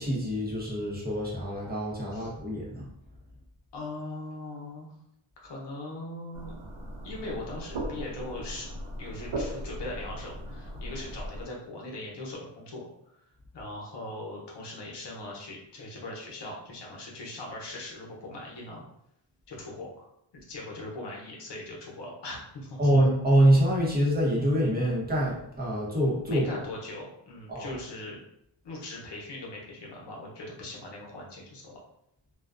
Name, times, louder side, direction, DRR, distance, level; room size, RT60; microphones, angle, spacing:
voice 1, 0.0-2.9 22.8-26.4 27.5-27.7, right 1 dB, 20° right, -4 dB, 0.8 m, -25 dB
voice 2, 3.7-5.0 5.4-6.6 7.0-8.7 9.0-12.9 13.5-18.8 19.5-20.0 20.3-22.9 26.3-28.2 28.6-31.8, left 2 dB, 60° left, -2 dB, 0.8 m, -40 dB
sound 1, 6.3-11.4, right 1 dB, 60° right, 0.6 m, -38 dB
2.4 x 2.2 x 2.4 m, 0.75 s
wide cardioid pair, 105°, 47 cm